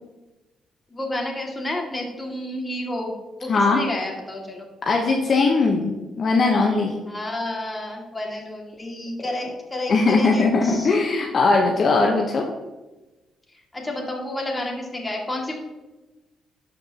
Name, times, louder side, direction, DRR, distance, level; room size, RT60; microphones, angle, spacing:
voice 1, 0.9-3.1 3.4-4.7 7.1-10.9 13.7-15.5, left 1 dB, 20° left, 0 dB, 2.2 m, -30 dB
voice 2, 3.5-3.8 4.9-6.9 9.9-12.4, left 3 dB, 55° left, 0 dB, 1.0 m, -19 dB
11.5 x 5.2 x 2.9 m, 1.1 s
supercardioid pair, 65°, 0 cm